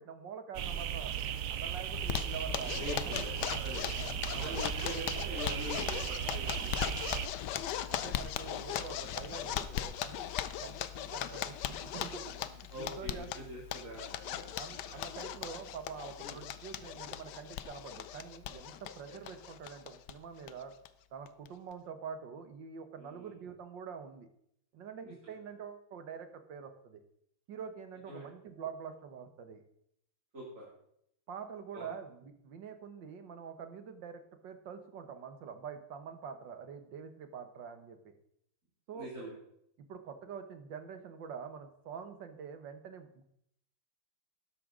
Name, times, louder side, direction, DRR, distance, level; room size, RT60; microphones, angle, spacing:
voice 1, 0.0-3.1 4.3-4.6 7.9-10.3 10.6-13.3 14.6-20.7 21.1-24.3 24.7-27.0 27.5-29.6 31.3-38.1 38.9-39.1 39.9-43.2, right 6 dB, 70° right, 8 dB, 1.8 m, -46 dB
sound 1, 0.5-7.3, right 9 dB, 90° right, 0.7 m, -37 dB
Zipper (clothing), 1.9-20.1 20.4-20.5 20.8-20.9 21.3-21.7, left 11 dB, 70° left, 1.2 m, -39 dB
voice 2, 2.7-3.9 4.3-7.3 7.5-7.9 12.7-15.1 16.2-16.4 19.1-19.2 23.0-23.3 25.2-25.3 28.1-28.3 30.3-30.6 31.7-31.9 38.9-39.3, equal, 40° right, -4 dB, 3.2 m, -44 dB
12.5 x 11.0 x 3.8 m, 0.72 s
omnidirectional pair, 2.2 m